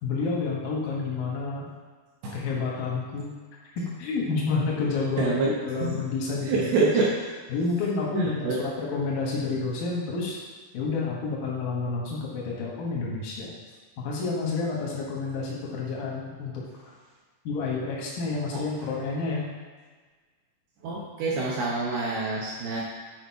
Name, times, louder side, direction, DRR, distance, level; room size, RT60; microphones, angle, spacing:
voice 1, 0.0-1.7 2.3-3.3 3.8-6.9 7.5-10.4 10.7-13.5 14.0-16.5 16.8-16.9 17.4-19.5, left 4 dB, 70° left, -3 dB, 2.1 m, -29 dB
voice 2, 5.2-5.5 5.8-6.0 6.4-7.1 8.1-8.6 18.5-18.6 20.8-22.8, right 3 dB, 80° right, -4 dB, 2.3 m, -26 dB
9.2 x 4.7 x 4.6 m, 1.4 s
omnidirectional pair, 5.9 m